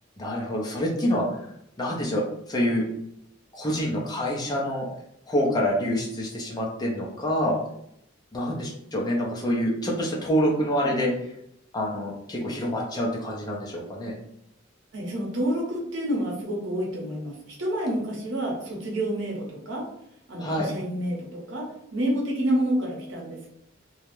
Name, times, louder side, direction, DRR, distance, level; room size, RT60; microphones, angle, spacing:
voice 1, 0.2-1.2 1.8-2.8 3.5-4.9 5.3-7.6 8.3-11.1 11.7-14.2 20.4-20.7, equal, 20° left, -3 dB, 0.5 m, -26 dB
voice 2, 14.9-19.8 20.3-23.5, right 1 dB, 80° right, -2 dB, 0.8 m, -29 dB
2.3 x 2.0 x 3.0 m, 0.74 s
head